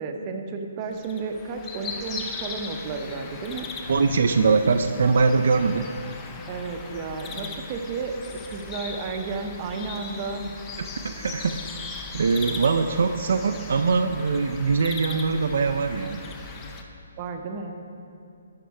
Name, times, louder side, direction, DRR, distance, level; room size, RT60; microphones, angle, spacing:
voice 1, 0.0-3.7 6.5-10.4 17.2-17.8, right 4 dB, 30° right, 4 dB, 0.7 m, -32 dB
sound 1, 0.9-16.8, left 4 dB, 20° left, 0.6 m, -38 dB
sound 2, 3.8-6.4, left 3 dB, 45° left, 1.5 m, -38 dB
voice 2, 3.9-5.9 10.8-11.6 12.1-16.2, right 4 dB, 65° right, 5 dB, 0.4 m, -22 dB
10.0 x 5.5 x 4.7 m, 2.5 s
hypercardioid pair, 155°, 0 cm